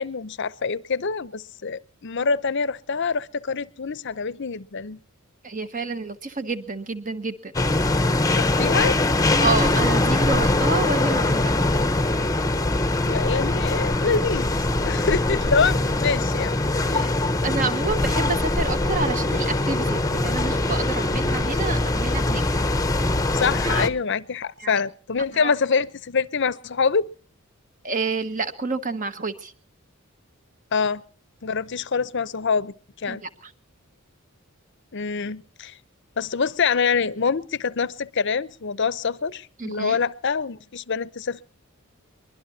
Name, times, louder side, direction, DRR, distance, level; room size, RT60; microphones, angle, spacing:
voice 1, 0.0-5.0 8.3-9.0 13.0-14.5 14.8-16.6 16.9-17.1 23.3-27.1 30.7-31.0 31.4-33.2 34.9-35.8 36.2-41.4, left 5 dB, 55° left, 0.7 m, -25 dB
voice 2, 5.4-7.5 9.4-11.5 16.8-17.1 17.4-22.4 23.6-23.8 24.6-24.8 25.3-25.5 27.8-29.5 33.1-33.5 39.6-40.0, right 3 dB, 40° right, 1.5 m, -28 dB
sound 1, 7.5-23.9, left 2 dB, 15° left, 0.9 m, -22 dB
23.5 x 21.0 x 2.8 m
head